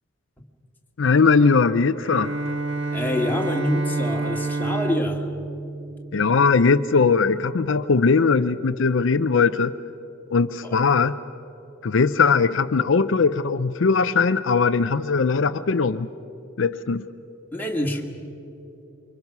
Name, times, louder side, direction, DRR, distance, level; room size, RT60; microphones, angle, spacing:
voice 1, 1.0-2.3 6.1-9.7 10.3-11.2 11.8-16.1 16.6-17.0, left 4 dB, 65° left, 11 dB, 0.5 m, -20 dB
Bowed string instrument, 2.0-6.9, right 3 dB, 65° right, 1.3 m, -29 dB
voice 2, 2.9-5.3 10.6-10.7 17.5-18.0, left 1 dB, 10° left, 0 dB, 2.1 m, -26 dB
27.5 x 24.5 x 6.0 m, 2.9 s
head